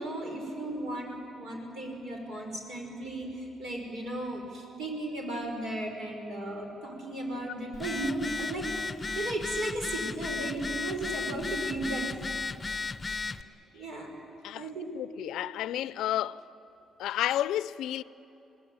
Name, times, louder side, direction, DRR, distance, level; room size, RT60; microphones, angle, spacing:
voice 1, 0.0-8.7 9.2-12.2 13.1-13.4 13.7-14.1 14.5-15.0, right 1 dB, 70° right, 6.0 m, -35 dB
Telephone, 7.7-13.4, left 4 dB, 25° left, 0.7 m, -35 dB
voice 2, 14.9-16.4 17.0-18.0, left 12 dB, 85° left, 0.5 m, -31 dB
27.0 x 19.0 x 8.8 m
cardioid pair, 90°, 0 cm